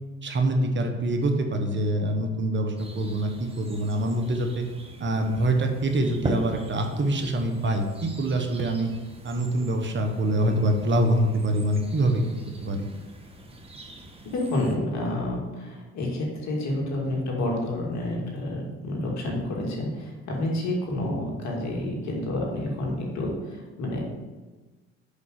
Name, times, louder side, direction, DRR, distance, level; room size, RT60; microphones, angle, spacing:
voice 1, 0.2-4.6 5.0-8.9 9.2-12.2 12.6-12.9, right 1 dB, 40° right, 4 dB, 1.2 m, -25 dB
sound 1, 2.8-14.8, equal, 20° right, 1.3 m, -41 dB
voice 2, 14.3-24.0, left 1 dB, 65° left, -2 dB, 2.5 m, -29 dB
5.5 x 5.3 x 6.6 m, 1.3 s
supercardioid pair, 75°, 30 cm